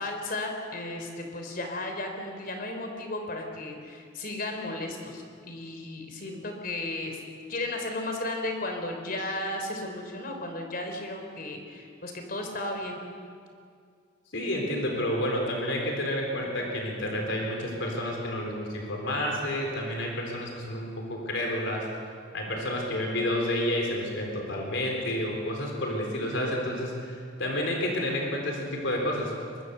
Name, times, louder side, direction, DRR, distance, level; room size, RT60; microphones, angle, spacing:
voice 1, 0.0-7.2 7.5-13.0, left 2 dB, 45° left, 4 dB, 3.7 m, -34 dB
voice 2, 14.3-21.8 22.3-29.3, left 1 dB, 70° left, 1 dB, 3.9 m, -30 dB
23.0 x 22.0 x 6.8 m, 2.3 s
head